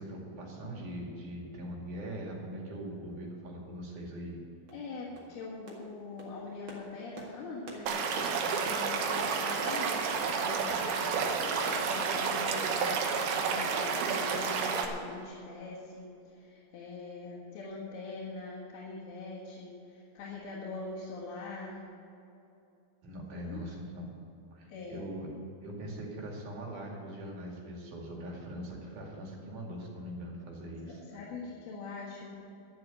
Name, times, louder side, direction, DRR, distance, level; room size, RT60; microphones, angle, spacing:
voice 1, 0.0-4.4 23.0-24.1 24.5-31.0, right 1 dB, 55° right, -1 dB, 3.6 m, -41 dB
sound 1, 4.2-4.3 4.7-4.8 5.1-5.4 5.7-5.9 6.2-13.3 13.7-14.5 14.7-14.8 15.2-15.3, right 2 dB, 40° right, 2.2 m, -45 dB
voice 2, 4.7-21.8 23.3-23.6 24.7-25.1 31.1-32.4, left 3 dB, 80° left, -6 dB, 3.6 m, -43 dB
Stream / Liquid, 7.9-14.9, right 5 dB, 80° right, 3.0 m, -30 dB
12.0 x 7.7 x 8.9 m, 2.7 s
omnidirectional pair, 4.4 m